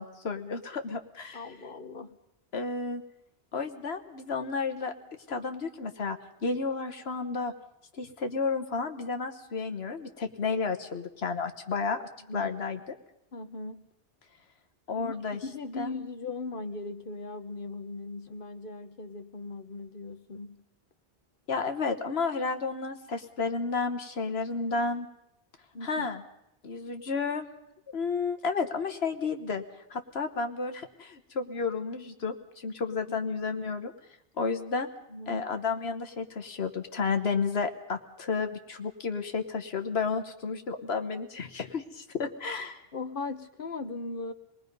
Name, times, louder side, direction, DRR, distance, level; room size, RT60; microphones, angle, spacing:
voice 1, 0.0-1.4 2.5-3.0 3.5-4.9 5.3-7.5 8.0-12.8 14.9-15.4 15.8-15.9 21.5-25.1 25.8-26.2 26.6-27.4 27.9-29.6 29.9-33.9 34.4-34.9 35.3-42.8, left 4 dB, 85° left, 6 dB, 1.5 m, -32 dB
voice 2, 1.3-2.2 12.3-12.5 13.3-13.8 15.0-15.2 15.4-20.6 25.7-26.1 33.1-33.2 35.1-35.5 42.9-44.3, left 3 dB, 60° left, 9 dB, 1.3 m, -38 dB
27.5 x 20.5 x 5.4 m, 0.81 s
omnidirectional pair, 1.0 m